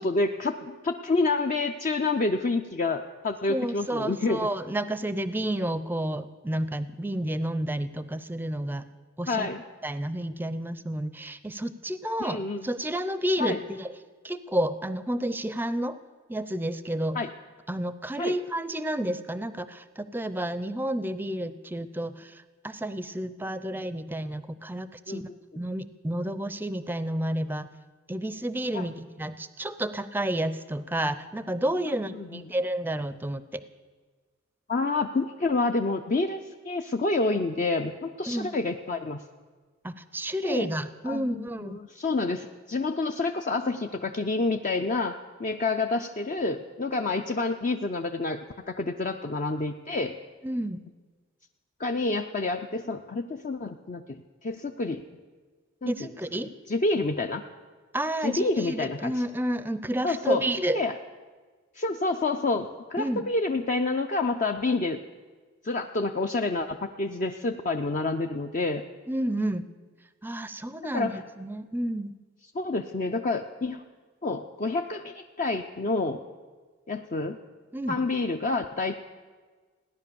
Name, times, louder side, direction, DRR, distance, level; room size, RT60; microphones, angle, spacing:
voice 1, 0.0-4.5 9.3-9.6 12.2-12.7 13.4-13.6 17.1-17.3 18.2-18.4 25.1-25.2 28.7-28.9 32.1-32.4 34.7-36.4 36.6-39.2 40.4-40.7 41.1-50.1 51.8-55.0 55.8-55.9 56.7-57.4 58.2-59.1 60.0-60.4 60.7-60.9 61.8-65.0 65.6-68.8 70.9-71.2 72.5-73.8 74.2-76.2 76.9-77.4 77.9-78.9, left 3 dB, 40° left, 4 dB, 0.6 m, -28 dB
voice 2, 3.5-8.9 9.2-9.5 9.8-13.9 14.2-16.0 16.3-17.2 17.7-25.2 25.5-27.7 28.1-33.6 38.3-38.5 39.8-41.8 50.4-50.8 55.9-56.5 57.9-60.8 63.0-63.2 69.1-69.6 70.2-72.1 77.7-78.0, right 1 dB, 10° right, 14 dB, 0.5 m, -30 dB
16.5 x 10.5 x 6.9 m, 1.4 s
head